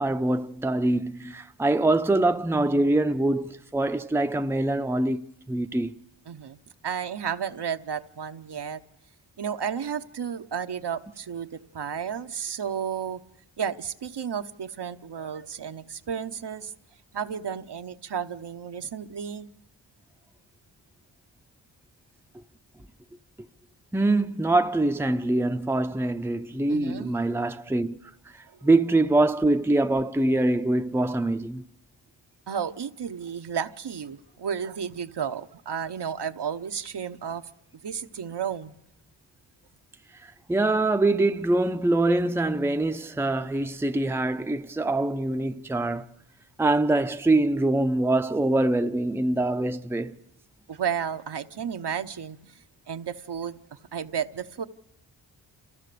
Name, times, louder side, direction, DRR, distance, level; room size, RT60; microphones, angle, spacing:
voice 1, 0.0-5.9 23.9-28.0 28.6-31.6 40.2-46.0 46.6-50.2, right 2 dB, 5° right, 0.7 m, -24 dB
voice 2, 6.3-6.6 6.8-8.8 9.4-13.2 13.6-16.7 17.1-19.5 26.7-27.1 32.5-37.4 37.8-38.7 50.7-52.6 52.9-54.7, right 7 dB, 60° right, 0.9 m, -32 dB
29.5 x 14.5 x 6.8 m
cardioid pair, 55°, 46 cm